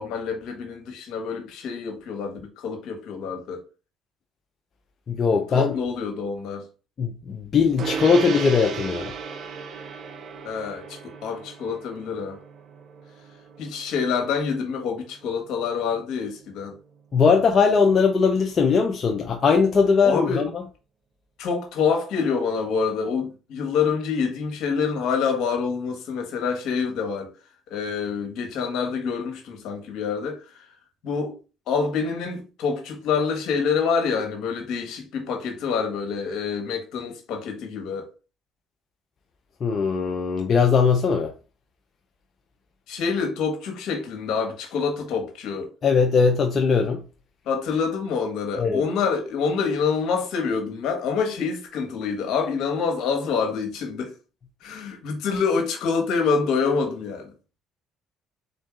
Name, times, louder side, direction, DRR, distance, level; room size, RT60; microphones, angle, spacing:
voice 1, 0.0-3.6 5.5-6.6 10.4-12.4 13.6-16.8 20.0-20.5 21.4-27.3 27.7-30.4 31.0-31.4 31.7-38.1 42.9-45.7 47.5-54.1 54.6-57.3, left 5 dB, 70° left, 1.2 m, -26 dB
voice 2, 5.1-5.8 7.0-9.1 17.1-20.6 39.6-41.3 45.8-47.0 48.6-48.8, left 5 dB, 45° left, 0.6 m, -20 dB
Gong, 7.8-17.5, right 6 dB, 55° right, 0.6 m, -37 dB
3.7 x 2.6 x 3.6 m
supercardioid pair, 75°, 0 cm